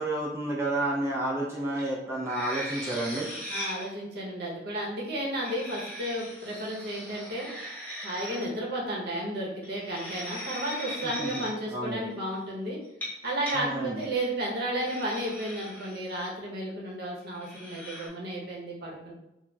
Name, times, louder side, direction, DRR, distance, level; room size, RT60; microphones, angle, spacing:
voice 1, 0.0-3.3 11.2-11.4 11.7-12.0 13.5-14.0, right 1 dB, 15° right, -5 dB, 0.4 m, -30 dB
sound 1, 1.8-1.9 2.2-3.9 5.2-8.5 9.6-11.5 12.8-13.6 14.0-14.2 14.7-16.3 17.3-18.1, equal, 10° left, 0.9 m, -39 dB
voice 2, 3.5-7.5 8.0-12.8 13.2-19.1, right 1 dB, 60° right, -3 dB, 0.8 m, -33 dB
4.0 x 2.0 x 2.3 m, 0.89 s
head